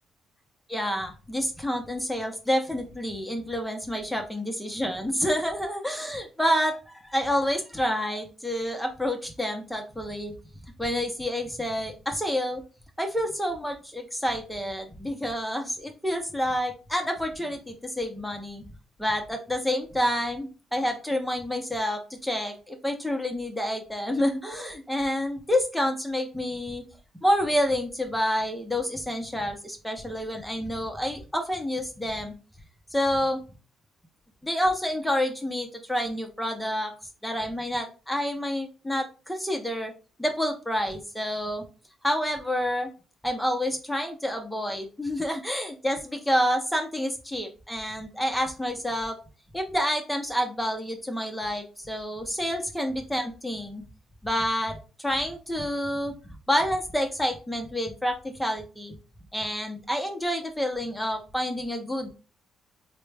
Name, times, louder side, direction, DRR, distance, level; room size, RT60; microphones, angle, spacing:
voice 1, 0.7-10.3 10.8-12.6 13.0-18.6 19.0-26.8 27.2-32.3 32.9-33.4 34.4-36.9 37.2-39.9 40.2-41.6 42.0-42.9 43.2-49.2 49.5-53.8 54.2-59.0 59.3-62.1, equal, 5° left, 3 dB, 0.8 m, -28 dB
3.7 x 2.2 x 3.4 m, 0.33 s
cardioid pair, 90°, 0 cm